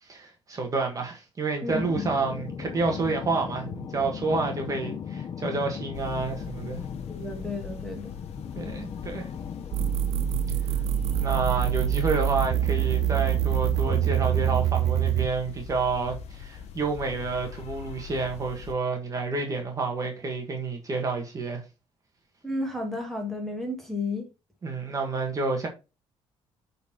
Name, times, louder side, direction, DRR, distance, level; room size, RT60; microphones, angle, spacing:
voice 1, 0.0-6.8 8.6-9.3 11.2-21.6 24.6-25.7, right 4 dB, 35° right, 1.7 m, -29 dB
voice 2, 1.6-2.1 7.1-8.1 22.4-24.3, left 2 dB, 5° left, 2.3 m, -32 dB
sound 1, 1.7-14.7, left 7 dB, 40° left, 0.6 m, -38 dB
sound 2, 5.9-18.7, left 8 dB, 85° left, 1.0 m, -41 dB
sound 3, 9.7-15.3, right 12 dB, 75° right, 0.6 m, -25 dB
8.4 x 4.2 x 4.4 m
cardioid pair, 135°, 11 cm